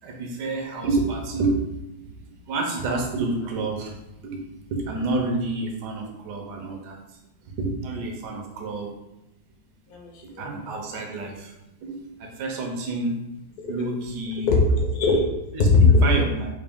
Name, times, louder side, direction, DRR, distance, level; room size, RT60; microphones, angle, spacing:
voice 1, 0.0-1.7 2.5-3.9 4.2-7.0 7.5-8.9 10.4-11.5 11.8-13.2 13.7-14.5 15.5-16.5, right 3 dB, 70° right, 1 dB, 1.1 m, -28 dB
voice 2, 9.9-11.0 13.6-13.7 14.5-15.2 15.7-16.0, left 3 dB, 65° left, -1 dB, 1.0 m, -20 dB
3.6 x 2.5 x 3.4 m, 0.93 s
omnidirectional pair, 2.3 m